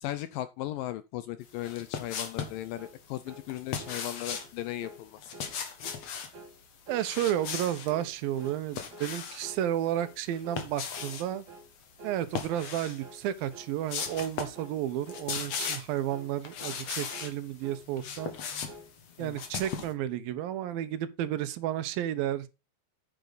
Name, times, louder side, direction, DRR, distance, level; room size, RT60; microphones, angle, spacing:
voice 1, 0.0-5.3 19.2-19.4, left 14 dB, 80° left, 2.0 m, -37 dB
sound 1, 1.6-2.6 3.5-4.5 5.2-6.3 7.0-7.9 8.4-9.5 10.3-11.3 12.3-13.0 13.4-13.5 13.9-14.6 14.9-16.0 16.4-17.3 17.8-19.9, left 7 dB, 50° left, 2.3 m, -37 dB
sound 2, 2.8-3.0 3.3-3.5 3.8-4.0 4.3-4.5 4.8-5.0 5.3-5.5 5.8-6.1 6.3-6.6 6.9-7.1 7.4-7.6 7.9-8.1 8.4-8.6 8.9-9.1 9.4-9.7 9.9-10.2 10.4-10.7 11.0-11.2 11.5-11.7 12.0-12.2 12.5-12.7 13.0-13.2 13.5-13.8 14.0-14.3 14.6-14.8 15.1-15.3 15.6-15.8 16.1-16.3 16.6-16.8 17.1-17.4 17.6-17.9 18.2-18.9, right 1 dB, 55° right, 3.4 m, -49 dB
voice 2, 6.9-11.4 12.0-18.4 19.2-22.5, right 12 dB, 75° right, 2.4 m, -32 dB
9.2 x 9.1 x 3.9 m
omnidirectional pair, 4.5 m